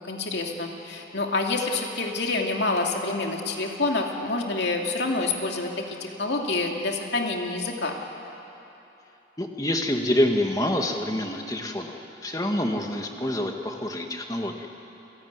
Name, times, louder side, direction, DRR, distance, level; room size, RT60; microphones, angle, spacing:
voice 1, 0.0-8.0, left 3 dB, 65° left, 1 dB, 2.6 m, -27 dB
voice 2, 9.4-12.0 12.2-14.7, left 1 dB, 20° left, 3 dB, 1.7 m, -26 dB
29.0 x 16.5 x 9.7 m, 2.9 s
head